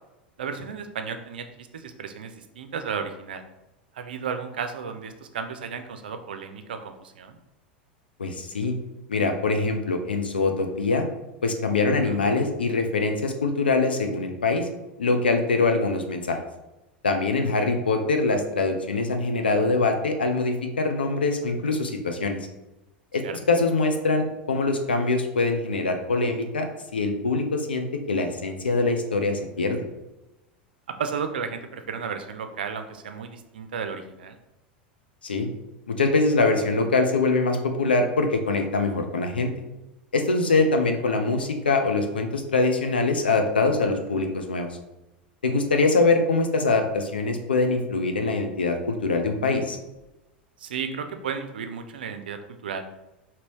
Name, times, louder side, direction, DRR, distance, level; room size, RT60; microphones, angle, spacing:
voice 1, 0.4-3.4 3.9-7.4 12.0-12.2 17.4-17.7 23.2-23.4 31.0-34.4 40.5-40.7 50.6-52.8, right 6 dB, 65° right, 8 dB, 0.5 m, -34 dB
voice 2, 8.2-8.8 9.1-11.1 11.4-14.7 15.0-16.4 17.0-22.4 23.1-26.7 26.9-29.8 35.2-35.5 35.9-39.5 40.1-44.7 45.4-49.8, left 3 dB, 75° left, 5 dB, 0.6 m, -23 dB
5.3 x 2.9 x 3.1 m, 0.99 s
figure-of-eight pair, 85°, 5 cm